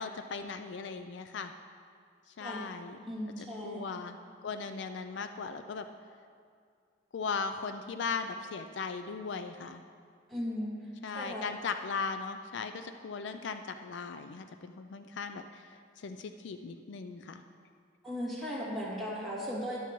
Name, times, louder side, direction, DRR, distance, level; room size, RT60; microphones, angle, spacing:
voice 1, 0.0-1.5 2.3-3.0 3.4-4.2 4.4-5.9 7.1-9.8 11.0-17.4, left 5 dB, 60° left, 8 dB, 0.4 m, -38 dB
voice 2, 3.0-3.8 10.3-10.7 11.1-11.5 18.0-19.8, equal, ahead, -8 dB, 2.4 m, -36 dB
12.5 x 11.0 x 3.1 m, 2.2 s
head